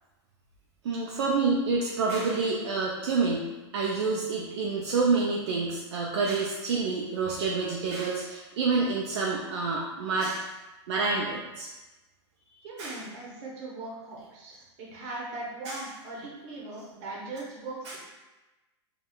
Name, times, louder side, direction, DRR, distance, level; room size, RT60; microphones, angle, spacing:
voice 1, 0.8-10.5 10.9-11.7 12.8-13.0 15.6-15.8 17.8-18.0, right 4 dB, 65° right, -3 dB, 0.5 m, -28 dB
voice 2, 12.6-18.0, right 2 dB, 40° right, -3 dB, 0.9 m, -39 dB
3.5 x 2.3 x 2.2 m, 1.1 s
supercardioid pair, 150°, 15 cm